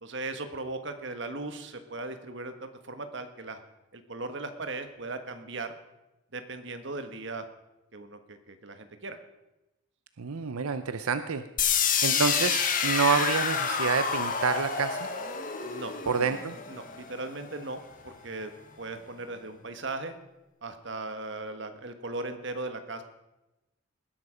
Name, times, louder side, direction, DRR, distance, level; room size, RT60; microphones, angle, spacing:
voice 1, 0.0-3.6 3.9-5.7 6.3-7.5 7.9-9.2 15.6-15.9 16.7-20.2 20.6-23.0, right 2 dB, 55° right, 8 dB, 1.4 m, -38 dB
voice 2, 10.2-11.4 12.0-15.1 16.1-16.6, right 5 dB, 90° right, 11 dB, 0.7 m, -28 dB
sound 1, 11.6-17.5, left 6 dB, 40° left, 1.3 m, -28 dB
19.5 x 11.0 x 5.1 m, 0.97 s
head